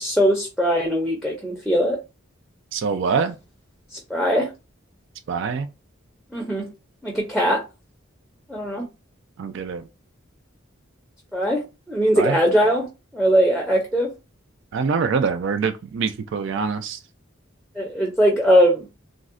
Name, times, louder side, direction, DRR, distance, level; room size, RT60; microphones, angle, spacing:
voice 1, 0.0-2.0 3.9-4.5 6.3-6.7 7.0-7.6 8.5-8.9 11.3-11.6 11.9-12.9 13.1-14.1 17.8-18.9, equal, ahead, 0.5 m, -20 dB
voice 2, 2.7-3.4 5.3-5.7 9.4-9.9 12.1-12.4 14.7-17.0, right 5 dB, 65° right, 0.3 m, -24 dB
3.6 x 2.0 x 2.4 m
head